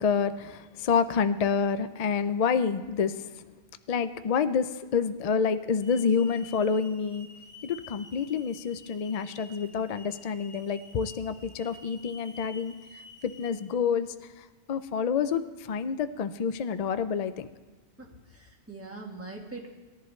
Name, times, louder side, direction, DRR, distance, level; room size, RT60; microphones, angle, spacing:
voice 1, 0.0-3.3 3.9-7.3 7.6-12.7 13.2-14.1 14.7-17.5, left 6 dB, 55° left, 12 dB, 0.4 m, -28 dB
Hiss / Alarm, 5.8-13.5, left 3 dB, 35° left, 1.5 m, -50 dB
voice 2, 18.0-19.7, right 3 dB, 10° right, -1 dB, 1.6 m, -42 dB
18.5 x 11.0 x 3.2 m, 1.3 s
omnidirectional pair, 1.2 m